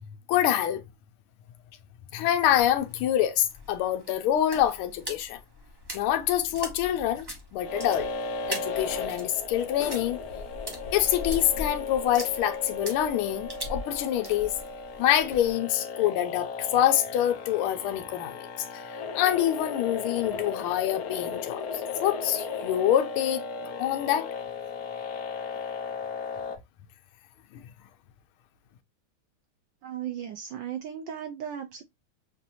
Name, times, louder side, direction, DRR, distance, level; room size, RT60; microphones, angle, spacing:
voice 1, 0.3-0.8 2.1-5.4 5.9-7.3 7.5-8.1 8.5-10.2 10.9-14.5 15.0-23.4 23.8-24.3, left 11 dB, 85° left, 1.5 m, -26 dB
sound 1, 2.5-15.6, left 1 dB, 40° right, 0.3 m, -41 dB
sound 2, 7.6-26.6, left 4 dB, 70° left, 0.9 m, -36 dB
voice 2, 29.8-31.8, right 9 dB, 70° right, 1.1 m, -36 dB
6.0 x 2.6 x 2.7 m
omnidirectional pair, 2.3 m